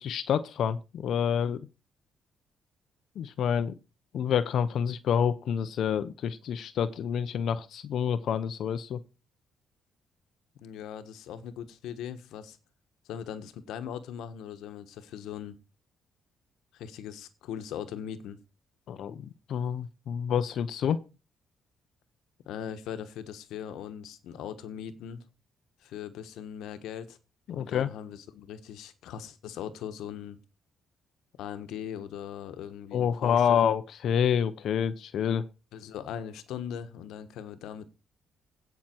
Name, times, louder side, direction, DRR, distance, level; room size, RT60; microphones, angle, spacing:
voice 1, 0.0-1.7 3.2-3.7 4.1-9.0 18.9-21.0 27.5-27.9 32.9-35.5, left 8 dB, 70° left, 0.7 m, -28 dB
voice 2, 10.6-12.6 13.1-15.6 16.7-18.4 22.5-25.2 25.8-27.2 27.5-30.4 31.4-33.6 35.7-37.9, left 9 dB, 85° left, 1.3 m, -40 dB
16.0 x 6.0 x 4.5 m
cardioid pair, 90°, 0 cm